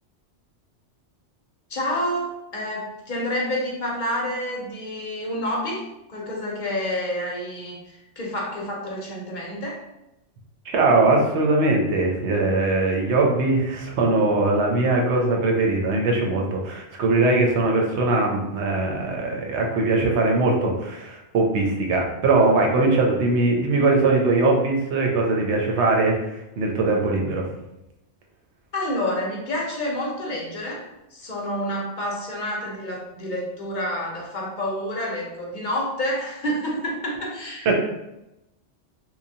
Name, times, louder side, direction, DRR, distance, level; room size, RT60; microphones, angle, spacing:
voice 1, 1.7-5.8 6.1-9.8 28.7-30.8 31.1-37.7, left 1 dB, 50° left, -2 dB, 0.7 m, -28 dB
voice 2, 10.7-27.4 37.7-37.8, right 2 dB, 75° right, 0 dB, 0.9 m, -21 dB
3.0 x 2.2 x 2.7 m, 0.90 s
omnidirectional pair, 1.2 m